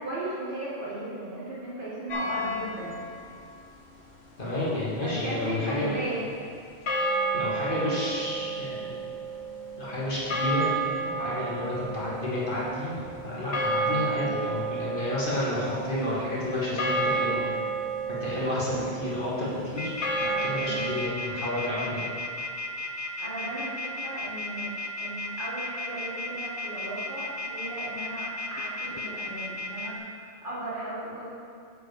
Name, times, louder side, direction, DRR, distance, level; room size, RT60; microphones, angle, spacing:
voice 1, 0.0-3.0 5.0-6.2 11.2-11.9 13.7-14.1 20.6-20.9 23.2-24.7 25.0-31.3, right 1 dB, 50° right, -9 dB, 2.4 m, -36 dB
sound 1, 2.1-3.2 6.9-21.0, right 3 dB, 75° left, 1.3 m, -31 dB
voice 2, 4.4-5.9 7.3-9.1 9.8-10.7 11.0-17.4 18.1-22.0, left 1 dB, 50° left, -8 dB, 2.1 m, -31 dB
sound 2, 19.8-29.9, left 2 dB, 20° left, 0.5 m, -34 dB
7.8 x 5.1 x 6.5 m, 2.4 s
omnidirectional pair, 1.1 m